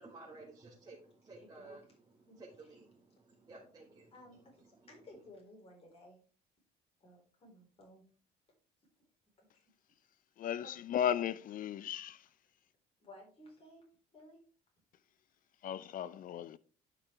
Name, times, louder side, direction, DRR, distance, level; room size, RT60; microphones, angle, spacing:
voice 1, 0.0-1.9 2.4-4.1, right 2 dB, 25° right, 1.7 m, -54 dB
voice 2, 1.4-2.0 2.3-2.7 4.1-6.2 7.0-8.0 9.4-9.6 13.0-13.8 14.1-14.4, left 1 dB, 35° left, 4.3 m, -57 dB
voice 3, 10.4-12.2 15.6-16.6, left 10 dB, 55° left, 0.5 m, -35 dB
11.0 x 5.8 x 3.5 m
cardioid pair, 110°, 17 cm